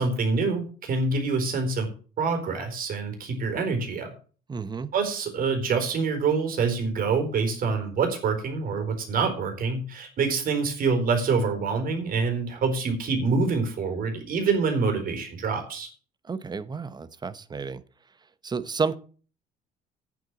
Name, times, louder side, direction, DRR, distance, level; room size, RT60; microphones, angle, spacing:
voice 1, 0.0-1.9 2.2-4.1 4.9-15.9, right 4 dB, 60° right, 5 dB, 4.2 m, -26 dB
voice 2, 4.5-4.9 16.3-17.8 18.4-19.0, right 5 dB, 25° right, 15 dB, 1.0 m, -31 dB
8.9 x 8.1 x 7.2 m, 0.40 s
cardioid pair, 110°, 17 cm